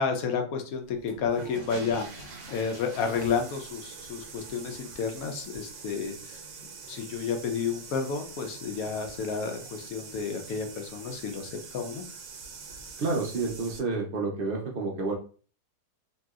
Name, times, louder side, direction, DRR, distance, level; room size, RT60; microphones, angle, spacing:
voice 1, 0.0-6.4 6.9-12.0, left 5 dB, 70° left, 5 dB, 1.0 m, -31 dB
sound 1, 0.9-13.8, right 5 dB, 65° right, 0.8 m, -44 dB
voice 2, 13.0-15.1, right 3 dB, 85° right, -2 dB, 0.4 m, -29 dB
3.0 x 2.7 x 2.3 m, 0.39 s
omnidirectional pair, 1.7 m